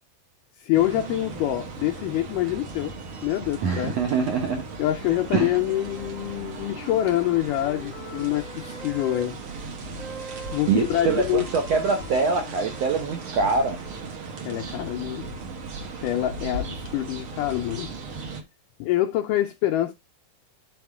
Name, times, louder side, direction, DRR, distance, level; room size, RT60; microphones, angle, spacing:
voice 1, 0.6-2.9 3.2-4.0 4.8-10.0 10.5-11.5 14.4-15.4 16.0-18.3 18.8-19.9, left 14 dB, 85° left, 1.9 m, -26 dB
sound 1, 0.7-18.4, right 3 dB, 55° right, 1.5 m, -37 dB
voice 2, 3.6-4.6 5.3-5.5 10.7-13.8, right 5 dB, 75° right, 1.5 m, -24 dB
Wind instrument woodwind instrument, 5.3-9.3 10.0-13.5, left 1 dB, 40° left, 1.0 m, -43 dB
9.4 x 4.3 x 3.5 m
omnidirectional pair, 4.3 m